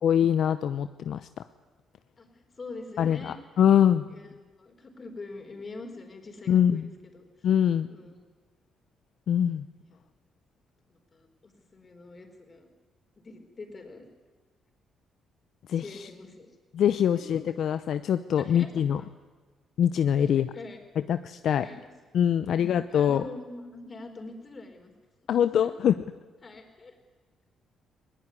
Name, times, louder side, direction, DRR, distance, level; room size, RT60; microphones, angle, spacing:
voice 1, 0.0-1.3 3.0-4.0 6.5-6.9 7.4-7.9 9.3-9.7 15.7-16.0 16.7-19.0 19.8-20.5 21.1-21.6 22.1-23.2 25.3-26.0, left 9 dB, 70° left, 11 dB, 0.7 m, -23 dB
voice 2, 2.2-3.4 4.1-4.3 4.6-7.5 7.9-8.2 9.8-10.0 10.9-12.7 13.2-14.1 15.7-16.5 17.1-17.4 18.4-18.7 19.0-19.1 20.1-20.8 21.6-21.8 22.4-24.9 25.3-25.7 26.4-27.0, left 3 dB, 35° left, 5 dB, 4.6 m, -44 dB
20.5 x 18.5 x 9.7 m, 1.4 s
cardioid pair, 90°, 0 cm